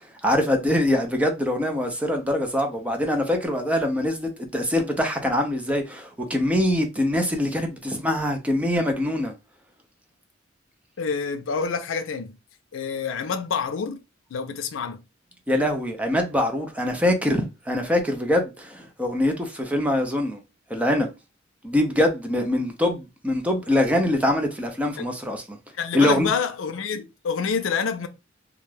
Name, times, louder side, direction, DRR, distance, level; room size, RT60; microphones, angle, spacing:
voice 1, 0.2-9.3 15.5-20.4 20.7-21.1 21.6-25.6 25.9-26.3, left 1 dB, 5° right, 0.5 m, -23 dB
voice 2, 11.0-12.4 12.7-14.0 14.3-15.0 25.0-25.1 25.7-28.1, left 6 dB, 90° left, 0.4 m, -27 dB
2.4 x 2.2 x 3.2 m
head